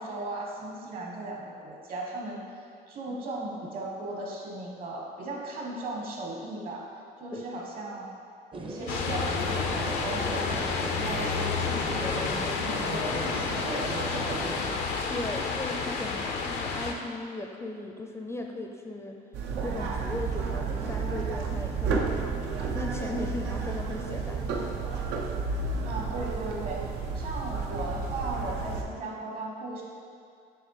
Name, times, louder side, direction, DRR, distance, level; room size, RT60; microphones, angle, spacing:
voice 1, 0.0-2.6 2.9-6.9 7.2-8.1 8.5-13.1 13.4-14.6 25.8-26.8 27.1-29.8, right 2 dB, 60° right, -2 dB, 1.4 m, -37 dB
sound 1, 8.5-14.8, right 3 dB, 30° right, 0.6 m, -38 dB
sound 2, 8.9-16.9, left 5 dB, 85° left, 0.6 m, -30 dB
voice 2, 15.1-19.2 19.6-24.7, left 2 dB, 15° left, 2 dB, 0.5 m, -37 dB
sound 3, 19.3-28.8, right 4 dB, 90° right, 0.7 m, -31 dB
7.5 x 3.2 x 4.8 m, 2.3 s
cardioid pair, 110°, 17 cm